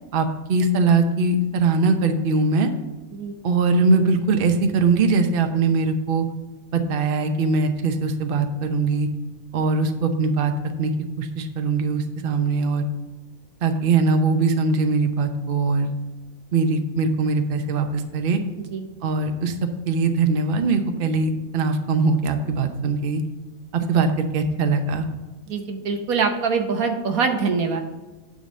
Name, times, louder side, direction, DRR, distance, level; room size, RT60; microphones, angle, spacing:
voice 1, 0.1-2.7 3.4-6.2 6.7-9.1 9.5-10.5 10.8-10.9 11.2-12.8 13.6-15.9 16.5-18.4 19.0-19.5 19.9-23.2 23.7-24.1 24.3-25.1, right 4 dB, 45° right, 6 dB, 0.8 m, -21 dB
voice 2, 25.5-27.8, right 5 dB, 80° right, 4 dB, 1.4 m, -24 dB
9.4 x 4.0 x 6.5 m, 1.2 s
omnidirectional pair, 1.5 m